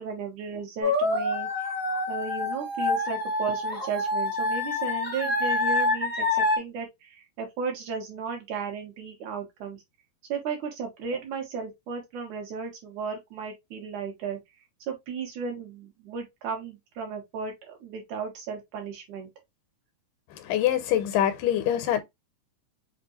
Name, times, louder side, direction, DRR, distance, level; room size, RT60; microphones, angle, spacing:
voice 1, 0.0-1.5 2.1-9.8 10.3-14.4 14.9-19.3, right 5 dB, 70° right, 2.8 m, -35 dB
sound 1, 0.8-6.6, left 2 dB, 10° left, 0.5 m, -27 dB
voice 2, 20.3-22.0, left 11 dB, 85° left, 2.4 m, -25 dB
5.9 x 2.5 x 2.9 m
omnidirectional pair, 3.7 m